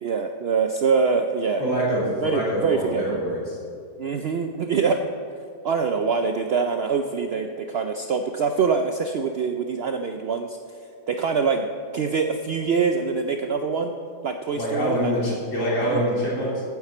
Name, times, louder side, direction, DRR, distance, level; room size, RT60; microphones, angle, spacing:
voice 1, 0.0-1.6 2.2-3.2 4.0-5.1 5.6-10.6 11.1-11.7 11.9-13.9 14.2-15.1 15.9-16.0, right 5 dB, 90° right, 6 dB, 0.5 m, -24 dB
voice 2, 1.6-3.6 14.5-16.6, equal, 50° left, -5 dB, 3.4 m, -25 dB
9.3 x 7.4 x 7.7 m, 2.3 s
omnidirectional pair, 1.7 m